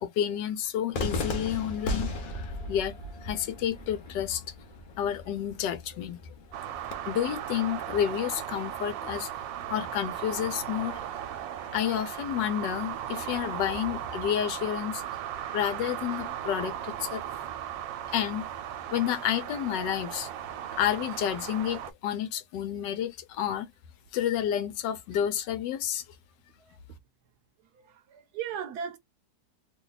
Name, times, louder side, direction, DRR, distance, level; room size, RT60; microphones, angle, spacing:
voice 1, 0.0-3.0 3.2-4.4 5.0-6.2 7.1-11.0 11.7-15.0 15.5-17.2 18.1-18.5 18.9-20.3 20.7-23.7 24.1-26.0, left 10 dB, 80° left, 1.3 m, -30 dB
Cheering / Fireworks, 0.9-6.9, left 2 dB, 50° left, 0.6 m, -36 dB
sound 1, 6.5-21.9, right 10 dB, 90° right, 1.3 m, -37 dB
voice 2, 27.8-29.0, right 8 dB, 70° right, 1.1 m, -37 dB
3.1 x 2.2 x 3.8 m
omnidirectional pair, 1.9 m